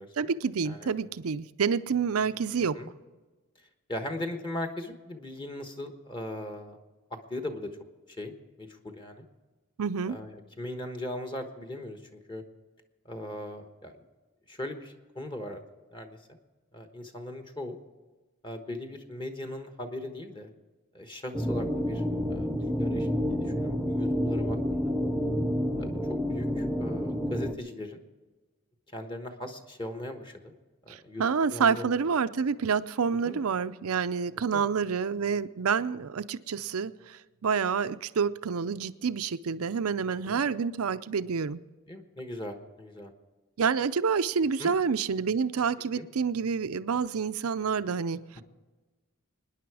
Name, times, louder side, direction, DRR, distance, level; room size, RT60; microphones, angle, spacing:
voice 1, 0.2-2.8 9.8-10.2 30.9-41.6 43.6-48.2, right 6 dB, 80° right, 14 dB, 0.5 m, -28 dB
voice 2, 3.9-6.8 7.1-7.7 8.2-8.3 8.6-9.3 10.1-12.4 13.0-13.9 14.5-15.6 15.9-16.4 16.7-17.8 18.4-20.5 20.9-22.0 22.3-24.9 25.8-28.0 28.9-30.5 30.8-31.2 31.5-31.9 33.2-33.4 34.5-34.7 40.2-40.4 41.9-43.1 44.6-44.7 46.0-46.1, left 1 dB, 20° left, 6 dB, 1.2 m, -39 dB
sound 1, 21.3-27.5, equal, ahead, 0.7 m, -29 dB
24.5 x 10.0 x 4.8 m, 1.3 s
head